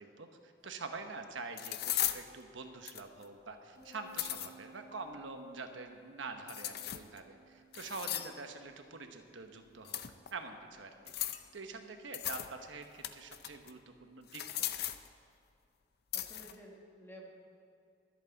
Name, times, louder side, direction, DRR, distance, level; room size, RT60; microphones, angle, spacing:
voice 1, 0.0-10.0 10.3-14.9, right 3 dB, 90° right, 5 dB, 1.1 m, -46 dB
sound 1, 0.6-0.7 1.6-2.2 2.9-3.2 3.9-4.5 6.5-7.2 7.7-8.4 9.8-10.3 11.1-11.5 12.1-12.5 12.8-13.7 14.3-15.1 16.1-16.6, left 12 dB, 55° left, 0.5 m, -37 dB
sound 2, 3.7-13.2, right 4 dB, 35° left, 3.9 m, -62 dB
voice 2, 16.1-17.3, right 1 dB, 10° left, -1 dB, 1.3 m, -52 dB
23.5 x 8.2 x 4.0 m, 2.5 s
head